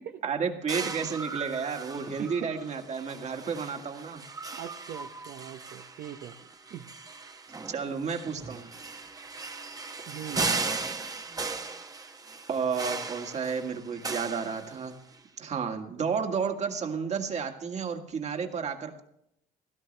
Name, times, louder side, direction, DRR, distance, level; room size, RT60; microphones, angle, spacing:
voice 1, 0.2-4.2 7.7-8.7 12.5-15.0 15.4-19.0, right 6 dB, 40° right, 4 dB, 1.9 m, -32 dB
sound 1, 0.7-15.1, right 4 dB, 20° right, 0.9 m, -37 dB
voice 2, 2.2-2.5 4.5-6.4 6.7-6.9 10.1-10.5, right 10 dB, 65° right, 5 dB, 0.8 m, -41 dB
16.5 x 13.0 x 3.3 m, 0.75 s
cardioid pair, 110°, 17 cm